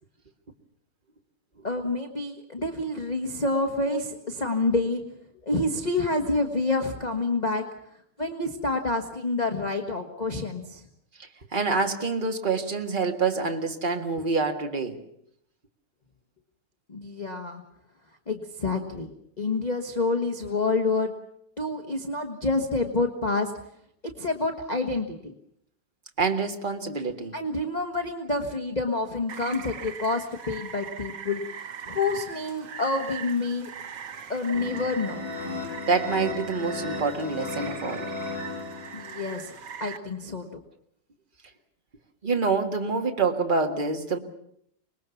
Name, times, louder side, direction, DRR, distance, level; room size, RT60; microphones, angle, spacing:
voice 1, 1.6-5.0 5.4-7.6 8.2-10.8 16.9-17.6 18.3-19.1 19.4-21.1 21.6-23.5 24.2-25.3 27.3-33.7 34.3-35.2 38.9-39.5 39.8-40.5, left 3 dB, 20° left, 3 dB, 1.4 m, -28 dB
voice 2, 11.2-15.0 26.2-27.3 35.9-38.1 42.2-44.2, right 4 dB, 25° right, 3 dB, 1.9 m, -26 dB
Rain, 29.3-40.0, right 7 dB, 55° right, 1.8 m, -41 dB
sound 1, 34.5-39.3, left 3 dB, 55° left, 6.5 m, -35 dB
25.5 x 20.5 x 7.1 m, 0.72 s
omnidirectional pair, 2.4 m